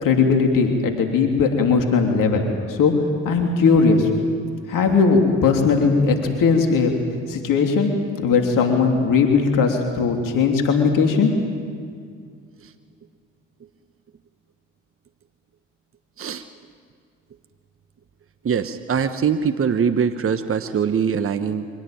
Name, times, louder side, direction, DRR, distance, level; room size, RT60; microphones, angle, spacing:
voice 1, 0.0-2.9 3.2-4.1 4.7-6.9 7.3-7.9 8.2-11.3, left 5 dB, 60° left, 3 dB, 3.2 m, -18 dB
voice 2, 18.4-21.7, right 7 dB, 40° right, 10 dB, 1.2 m, -22 dB
24.5 x 17.5 x 9.1 m, 2.1 s
hypercardioid pair, 55°, 35 cm